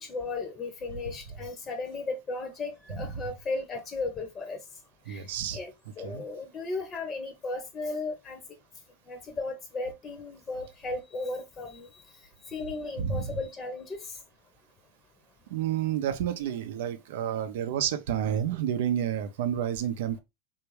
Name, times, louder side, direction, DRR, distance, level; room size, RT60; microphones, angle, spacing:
voice 1, 0.0-4.6 5.1-5.3 5.5-5.7 6.0-8.4 9.1-11.9 12.5-14.2, left 3 dB, 30° left, 0.7 m, -35 dB
voice 2, 5.1-5.6 6.0-6.2 13.0-13.4 15.5-20.2, right 9 dB, 70° right, 0.6 m, -30 dB
3.4 x 2.6 x 3.1 m
hypercardioid pair, 105°, 0 cm